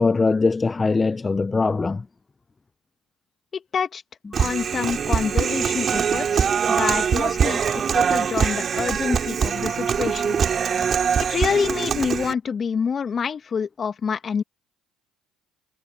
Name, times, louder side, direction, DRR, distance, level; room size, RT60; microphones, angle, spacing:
voice 1, 0.0-2.0 10.7-10.8, left 4 dB, 25° left, 0.9 m, -21 dB
voice 2, 3.5-4.0 4.4-10.4 11.2-14.4, left 6 dB, 40° left, 2.4 m, -27 dB
Human voice, 4.3-12.3, right 7 dB, 45° right, 4.2 m, -23 dB
hypercardioid pair, 60°, 0 cm